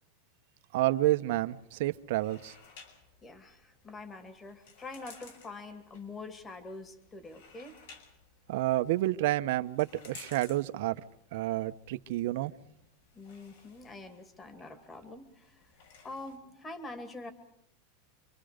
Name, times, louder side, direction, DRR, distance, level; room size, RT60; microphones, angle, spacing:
voice 1, 0.7-2.5 8.5-11.0 11.3-12.5, right 16 dB, 60° right, 10 dB, 1.1 m, -29 dB
sound 1, 1.4-16.4, left 5 dB, 70° left, 6.0 m, -57 dB
voice 2, 3.2-7.8 13.1-15.7 16.0-17.3, left 2 dB, 15° left, 8 dB, 2.4 m, -45 dB
27.5 x 24.5 x 5.2 m, 0.72 s
supercardioid pair, 160°, 0 cm